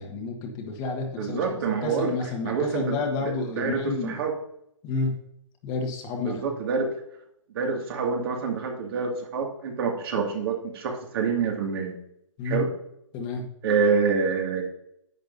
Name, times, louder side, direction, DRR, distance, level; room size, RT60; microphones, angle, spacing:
voice 1, 0.0-1.4 1.8-4.2 4.8-5.1 5.6-6.5 12.4-12.6 13.1-13.5, left 4 dB, 25° left, 2 dB, 1.6 m, -30 dB
voice 2, 1.2-2.1 2.4-3.0 3.2-4.3 6.2-6.9 7.5-12.0 12.4-12.7 13.6-14.6, right 5 dB, 45° right, 2 dB, 2.3 m, -27 dB
10.5 x 8.5 x 2.7 m, 0.76 s
hypercardioid pair, 140°, 17 cm